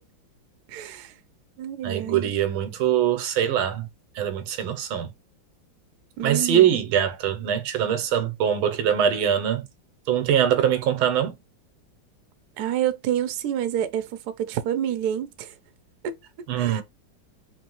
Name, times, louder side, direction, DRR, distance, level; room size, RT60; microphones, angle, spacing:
voice 1, 0.7-1.1 1.6-2.3 6.2-6.9 12.6-15.5 16.0-16.1 16.6-16.8, right 10 dB, 65° right, 1.0 m, -28 dB
voice 2, 1.8-3.9 4.1-5.1 6.2-9.7 10.1-11.3 16.5-16.8, right 9 dB, 90° right, 1.5 m, -23 dB
4.1 x 3.1 x 3.0 m
omnidirectional pair, 2.2 m